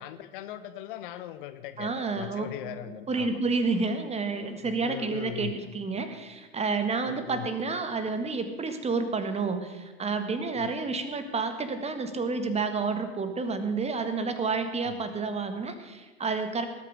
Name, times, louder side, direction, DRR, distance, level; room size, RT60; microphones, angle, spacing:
voice 1, 0.0-3.4 4.6-5.6 7.0-7.5 10.5-10.7 14.9-15.1, left 13 dB, 50° left, 12 dB, 1.0 m, -40 dB
voice 2, 1.8-16.7, right 4 dB, 20° right, 9 dB, 1.6 m, -30 dB
19.0 x 8.8 x 6.4 m, 1.4 s
figure-of-eight pair, 75°, 33 cm